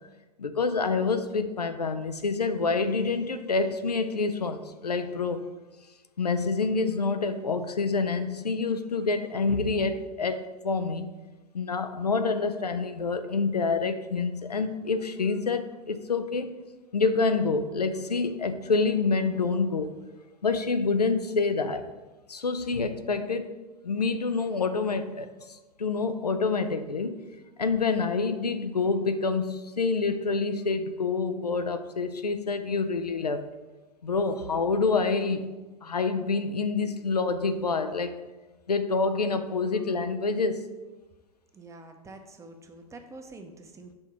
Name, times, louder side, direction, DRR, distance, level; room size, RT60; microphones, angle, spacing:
voice 1, 0.4-5.4 6.2-11.1 11.5-16.6 16.9-20.0 20.4-21.8 22.3-23.6 23.8-27.2 27.6-33.5 34.0-35.5 35.8-38.3 38.7-40.7, left 4 dB, 90° left, 0.4 m, -27 dB
voice 2, 41.5-43.9, right 2 dB, 15° right, 0.7 m, -46 dB
5.2 x 3.6 x 5.6 m
figure-of-eight pair, 90°, 20 cm